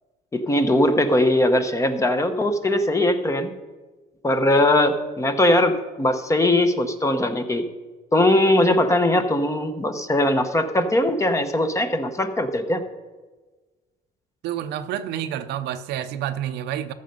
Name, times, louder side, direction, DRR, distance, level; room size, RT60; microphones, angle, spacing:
voice 1, 0.3-3.5 4.2-7.6 8.1-12.8, left 1 dB, 20° left, 8 dB, 0.9 m, -20 dB
voice 2, 14.4-16.9, right 10 dB, 80° right, 10 dB, 0.7 m, -29 dB
14.0 x 6.6 x 5.4 m, 1.3 s
cardioid pair, 110°, 17 cm